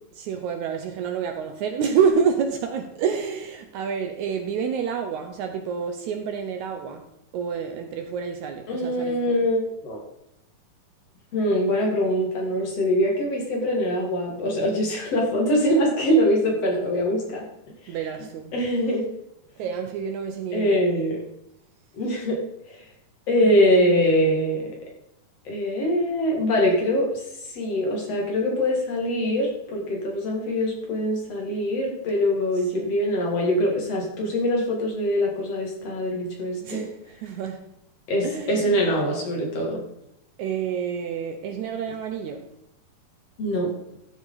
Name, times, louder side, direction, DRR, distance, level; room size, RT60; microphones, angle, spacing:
voice 1, 0.1-7.1 7.3-9.4 17.9-18.5 19.6-20.8 23.4-24.2 32.7-32.9 36.6-37.6 38.2-38.9 40.4-42.5, right 6 dB, 80° right, 1.7 m, -28 dB
voice 2, 8.7-10.0 11.3-17.4 18.5-19.0 20.5-21.2 21.9-22.4 22.7-22.8 23.3-24.7 25.4-27.2 27.5-36.9 38.1-39.8 43.4-43.7, equal, 45° left, 3.2 m, -23 dB
13.0 x 7.1 x 4.0 m
omnidirectional pair, 4.2 m